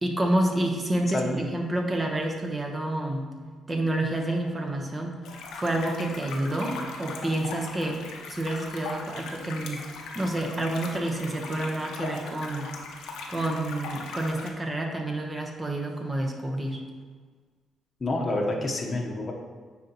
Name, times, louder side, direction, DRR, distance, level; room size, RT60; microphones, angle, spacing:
voice 1, 0.0-3.2 3.7-5.2 5.5-8.0 8.3-9.9 10.1-12.7 13.3-16.8, right 1 dB, 25° right, 2 dB, 1.0 m, -29 dB
voice 2, 1.1-1.5 18.0-19.3, left 2 dB, 35° left, -1 dB, 0.9 m, -28 dB
sound 1, 5.2-14.5, left 3 dB, 85° left, 0.8 m, -39 dB
9.2 x 4.0 x 2.9 m, 1.5 s
cardioid pair, 90°, 0 cm